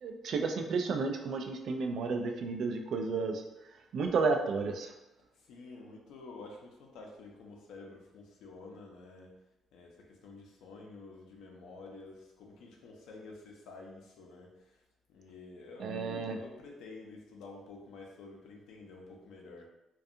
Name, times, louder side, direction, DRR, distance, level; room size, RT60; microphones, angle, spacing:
voice 1, 0.0-3.4 3.9-4.9 15.8-16.4, right 4 dB, 70° right, 5 dB, 0.3 m, -32 dB
voice 2, 5.4-9.3 9.7-14.8 15.1-19.7, left 3 dB, 85° left, 0 dB, 0.5 m, -50 dB
2.4 x 2.2 x 2.7 m, 0.95 s
cardioid pair, 90°, 0 cm